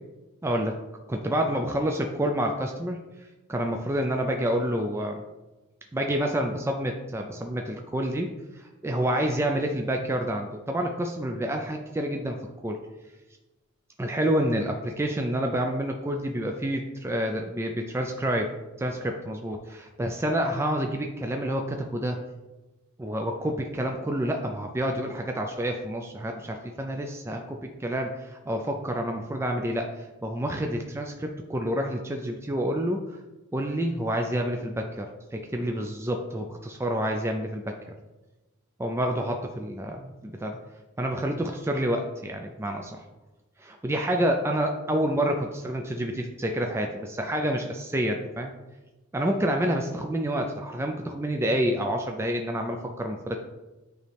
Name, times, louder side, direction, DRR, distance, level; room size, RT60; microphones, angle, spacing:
voice 1, 0.4-0.8 1.1-3.0 3.5-5.2 5.9-12.4 12.6-12.8 14.0-18.5 18.8-22.2 23.0-33.2 33.5-37.9 38.8-40.6 41.0-43.0 43.6-48.5 49.1-53.4, right 1 dB, 10° right, 3 dB, 0.4 m, -28 dB
9.1 x 3.1 x 3.3 m, 1.1 s
head